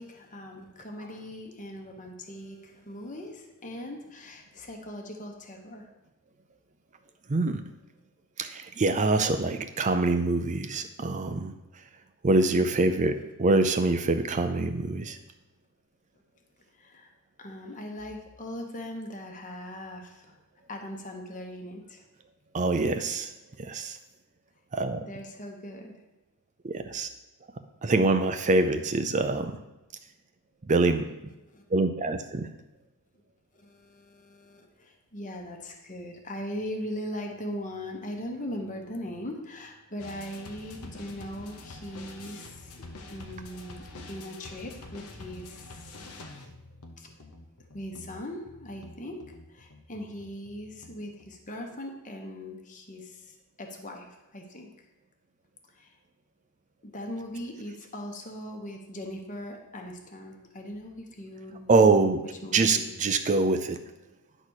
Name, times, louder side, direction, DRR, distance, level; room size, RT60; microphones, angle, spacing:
voice 1, 0.0-5.8 16.8-17.1 17.4-20.3 20.7-22.0 25.0-25.9 31.5-31.6 33.5-42.7 43.1-46.0 47.0-47.1 47.7-49.2 49.5-54.1 54.3-54.7 55.7-55.9 56.8-62.0 62.4-62.9, left 1 dB, 35° left, 2 dB, 1.1 m, -40 dB
voice 2, 7.3-7.6 8.4-11.5 12.2-15.2 22.5-23.3 23.6-24.0 24.7-25.0 26.6-27.1 27.8-29.6 30.7-31.1 31.7-32.5 61.7-62.2 62.5-63.8, right 3 dB, 35° right, 8 dB, 0.5 m, -24 dB
sound 1, 40.0-51.4, left 2 dB, 75° left, 0.9 m, -46 dB
10.0 x 4.1 x 6.4 m, 1.0 s
head